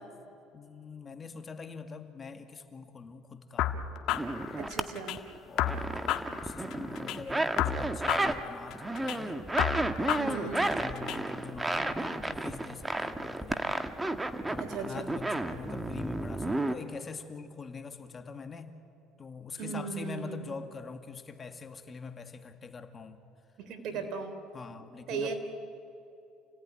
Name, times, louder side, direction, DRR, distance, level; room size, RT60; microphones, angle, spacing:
voice 1, 0.5-3.8 5.5-9.4 9.9-13.6 14.5-18.8 19.2-23.2 23.9-24.1 24.5-25.3, left 5 dB, 30° left, 7 dB, 2.0 m, -44 dB
sound 1, 3.6-5.2 5.6-7.2 7.6-9.2 9.6-11.2, left 11 dB, 65° left, 1.6 m, -32 dB
sound 2, 4.1-4.8 5.2-8.4 8.7-16.8, right 2 dB, 15° right, 1.6 m, -32 dB
voice 2, 4.6-5.2 10.2-10.8 14.6-15.1 19.6-20.5 23.6-24.4 25.1-25.3, right 5 dB, 65° right, 7 dB, 3.7 m, -37 dB
28.5 x 18.0 x 10.0 m, 2.7 s
supercardioid pair, 90°, 0 cm